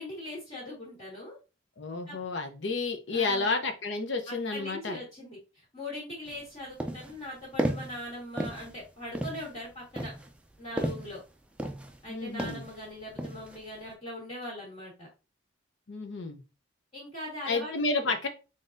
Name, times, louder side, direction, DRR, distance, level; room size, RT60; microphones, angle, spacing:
voice 1, 0.0-1.4 2.1-2.2 3.1-3.6 4.3-10.1 10.6-11.2 12.0-15.1 16.9-17.7 18.0-18.1, left 1 dB, 30° left, -4 dB, 1.6 m, -41 dB
voice 2, 1.8-5.0 12.1-12.7 15.9-16.4 17.5-18.3, left 3 dB, 60° left, 6 dB, 0.7 m, -31 dB
sound 1, 6.3-6.4 6.8-7.2 7.6-8.0 8.4-8.8 9.1-9.5 10.0-11.2 11.6-12.0 12.4-12.7 13.2-13.6, right 1 dB, 5° right, 0.4 m, -33 dB
3.9 x 3.8 x 2.6 m, 0.30 s
head